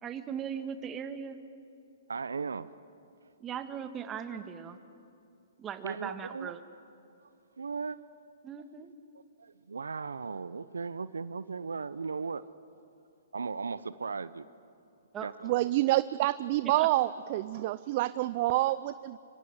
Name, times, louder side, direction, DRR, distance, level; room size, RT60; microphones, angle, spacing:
voice 1, 0.0-1.4 3.4-4.8 5.6-6.6 8.4-8.9 15.1-15.3 16.8-16.9, right 8 dB, 20° right, 9 dB, 1.7 m, -39 dB
voice 2, 2.1-2.7 5.8-6.5 7.6-8.0 8.8-8.9 9.4-12.4 13.3-14.4 15.2-15.6, right 5 dB, 85° right, 16 dB, 0.8 m, -37 dB
voice 3, 15.4-19.2, right 16 dB, 45° right, 16 dB, 0.5 m, -28 dB
25.5 x 24.5 x 8.2 m, 2.6 s
hypercardioid pair, 130°, 0 cm